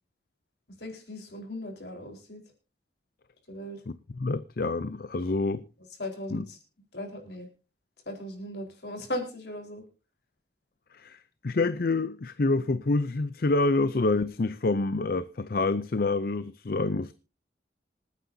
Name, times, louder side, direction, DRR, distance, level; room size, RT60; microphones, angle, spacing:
voice 1, 0.7-2.4 3.5-3.8 6.0-6.6 6.9-7.5 8.1-9.8, left 1 dB, 70° left, 4.3 m, -37 dB
voice 2, 4.2-5.7 6.3-6.4 10.9-17.1, left 3 dB, 55° left, 0.6 m, -27 dB
26.5 x 9.5 x 2.7 m
head